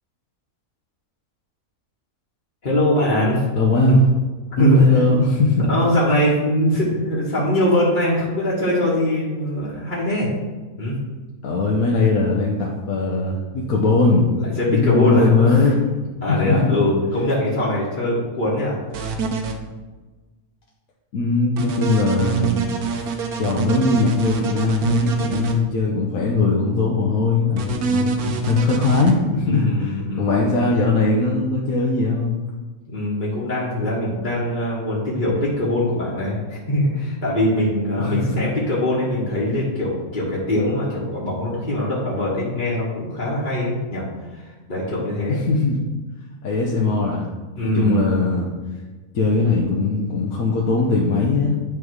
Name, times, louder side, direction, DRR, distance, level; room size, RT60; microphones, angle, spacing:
voice 1, 2.6-3.4 3.9-4.0 4.6-4.8 5.6-10.3 10.8-10.9 14.4-15.7 16.2-19.1 29.4-30.4 32.9-45.4 47.5-48.1, left 1 dB, 35° left, -7 dB, 1.5 m, -22 dB
voice 2, 3.5-4.0 4.6-5.7 11.4-14.3 14.7-15.8 16.4-16.7 21.1-22.6 23.0-23.1 23.4-32.4 38.0-38.4 45.3-45.8 46.4-47.3 47.7-48.5 49.1-51.5, left 3 dB, 75° left, -3 dB, 1.3 m, -19 dB
sound 1, 18.9-19.5 21.6-25.5 27.6-29.1, right 6 dB, 90° right, 1.3 m, -25 dB
9.6 x 3.4 x 4.7 m, 1.3 s
omnidirectional pair, 1.5 m